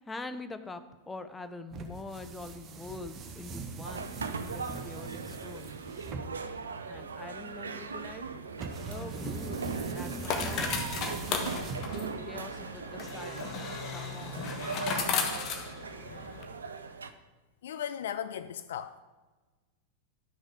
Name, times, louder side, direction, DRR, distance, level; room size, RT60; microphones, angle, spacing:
voice 1, 0.1-5.8 6.9-8.3 8.9-13.6 13.9-14.5, left 3 dB, 10° left, 0.7 m, -45 dB
sound 1, 1.7-12.3, right 4 dB, 30° right, 1.2 m, -41 dB
sound 2, 3.8-17.1, right 5 dB, 70° right, 0.6 m, -40 dB
sound 3, 8.8-16.4, left 5 dB, 35° left, 1.3 m, -36 dB
voice 2, 17.6-19.0, left 9 dB, 60° left, 0.4 m, -36 dB
12.0 x 6.4 x 4.8 m
figure-of-eight pair, 90°, 0 cm